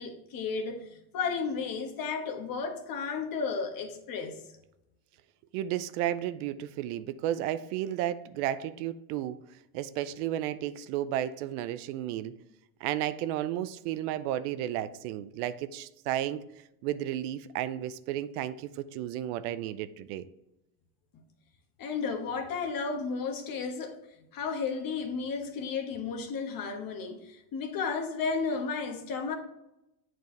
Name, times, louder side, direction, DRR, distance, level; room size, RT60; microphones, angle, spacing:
voice 1, 0.0-4.4 21.1-21.2 21.8-24.0 24.3-29.4, left 5 dB, 50° left, 1.3 m, -33 dB
voice 2, 5.5-9.4 9.7-12.3 12.8-16.4 16.8-20.3, right 12 dB, 75° right, 0.6 m, -33 dB
8.1 x 4.6 x 3.2 m
supercardioid pair, 95°, 45 cm